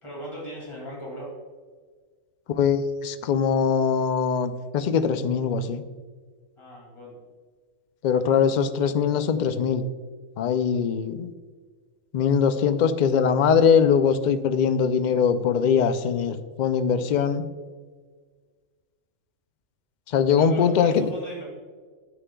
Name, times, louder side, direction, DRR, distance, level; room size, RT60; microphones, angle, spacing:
voice 1, 0.0-1.3 6.6-7.2 20.3-21.4, equal, 25° left, -4 dB, 2.4 m, -38 dB
voice 2, 2.5-5.8 8.0-9.8 10.4-11.3 12.1-17.5 20.1-21.1, left 7 dB, 65° left, 10 dB, 0.4 m, -22 dB
11.0 x 8.0 x 2.3 m, 1.5 s
omnidirectional pair, 1.3 m